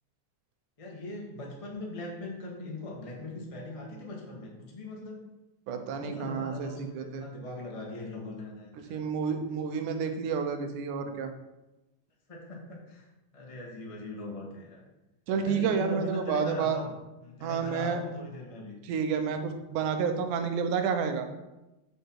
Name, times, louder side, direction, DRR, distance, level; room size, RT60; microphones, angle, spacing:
voice 1, 0.8-5.2 5.9-9.0 12.3-14.8 15.4-16.9 17.2-18.7, left 2 dB, 40° left, -2 dB, 0.4 m, -40 dB
voice 2, 5.7-6.7 6.9-7.2 8.9-11.3 15.3-16.8 17.4-18.0 18.9-21.3, right 6 dB, 75° right, 7 dB, 2.3 m, -30 dB
7.8 x 6.7 x 4.6 m, 1.0 s
omnidirectional pair, 3.7 m